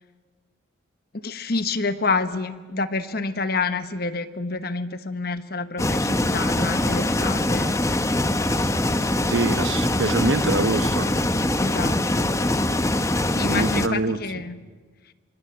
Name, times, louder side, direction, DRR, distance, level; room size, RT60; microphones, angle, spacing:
voice 1, 1.2-7.8 11.6-12.3 13.3-14.6, left 3 dB, 50° left, 11 dB, 1.3 m, -28 dB
sound 1, 5.8-13.9, left 1 dB, 15° left, 0.9 m, -23 dB
voice 2, 9.3-11.1 13.4-14.2, right 2 dB, 65° right, 12 dB, 1.1 m, -25 dB
26.0 x 25.0 x 8.9 m, 1.4 s
head